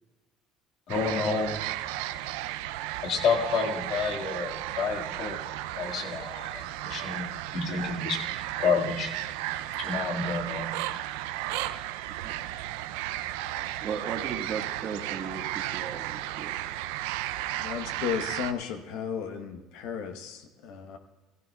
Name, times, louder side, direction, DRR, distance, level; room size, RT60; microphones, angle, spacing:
voice 1, 0.9-1.6 3.0-5.4 5.8-7.3 7.5-8.2 8.6-9.1 9.8-10.7, left 5 dB, 60° left, 1 dB, 1.8 m, -29 dB
sound 1, 0.9-18.5, right 14 dB, 90° right, 0.4 m, -34 dB
voice 2, 13.8-16.5, right 6 dB, 50° right, 2 dB, 1.4 m, -36 dB
voice 3, 17.6-21.0, left 8 dB, 80° left, 6 dB, 1.0 m, -34 dB
15.0 x 15.0 x 2.3 m, 1.1 s
cardioid pair, 115°, 0 cm